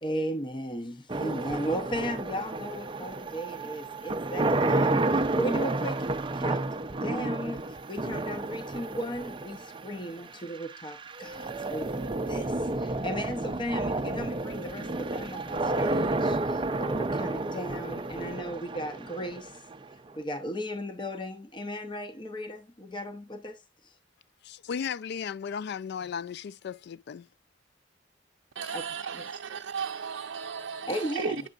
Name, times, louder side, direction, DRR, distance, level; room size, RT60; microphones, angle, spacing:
voice 1, 0.0-6.1 6.4-19.6 20.2-23.9 28.7-28.8 29.1-29.2 30.9-31.3, equal, 25° left, 0.8 m, -36 dB
sound 1, 1.1-20.1, right 2 dB, 25° right, 0.5 m, -31 dB
voice 2, 24.4-27.3, left 7 dB, 60° left, 0.3 m, -35 dB
voice 3, 28.5-31.4, right 6 dB, 75° right, 0.5 m, -35 dB
9.0 x 6.6 x 2.4 m
head